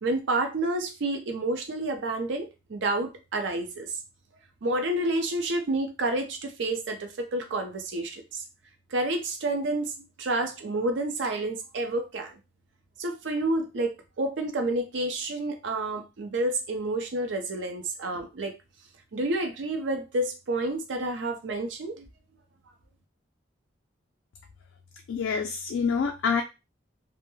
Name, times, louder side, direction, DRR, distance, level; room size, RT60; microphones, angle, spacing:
voice 1, 0.0-3.9 4.6-8.4 8.9-9.9 10.2-12.3 13.0-18.5 19.1-22.0, right 2 dB, 75° right, 5 dB, 0.5 m, -29 dB
voice 2, 25.1-26.4, left 5 dB, 85° left, 4 dB, 0.3 m, -26 dB
2.1 x 2.1 x 3.0 m, 0.26 s
head